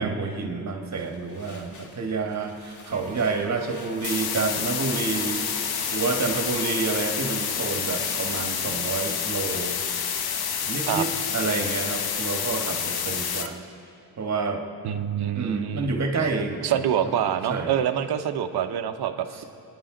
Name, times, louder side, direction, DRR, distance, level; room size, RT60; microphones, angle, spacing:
voice 1, 0.0-5.5 5.9-9.8 10.6-13.6 14.2-14.6 15.3-16.8 17.5-17.7 19.3-19.4, right 4 dB, 40° right, 3 dB, 1.6 m, -29 dB
sound 1, 0.9-7.3 7.7-12.3, left 3 dB, 45° left, 1.5 m, -45 dB
sound 2, 2.9-8.6, right 2 dB, 20° right, 1.4 m, -44 dB
sound 3, 4.0-13.5, left 7 dB, 60° left, 1.0 m, -28 dB
voice 2, 14.8-15.9 16.6-19.4, right 9 dB, 65° right, 8 dB, 1.0 m, -26 dB
26.5 x 10.0 x 3.9 m, 2.7 s
cardioid pair, 130°, 42 cm